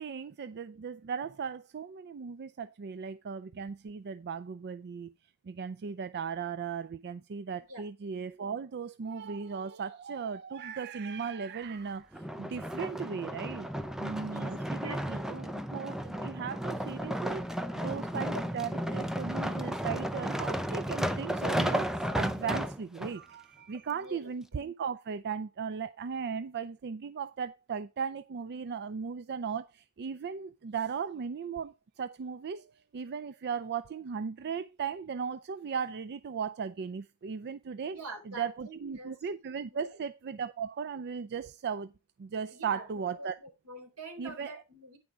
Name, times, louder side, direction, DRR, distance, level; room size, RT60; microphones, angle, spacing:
voice 1, 0.0-5.1 5.4-13.7 14.0-17.5 17.7-38.0 38.3-41.9 42.2-43.3 44.2-44.5, right 6 dB, 50° right, 0.4 m, -37 dB
sound 1, 12.1-23.1 23.8-23.9, equal, ahead, 0.6 m, -33 dB
voice 2, 14.3-15.3 23.9-24.6 37.9-39.2 39.8-40.0 42.5-45.0, right 2 dB, 85° right, 3.6 m, -46 dB
9.6 x 6.1 x 4.6 m
head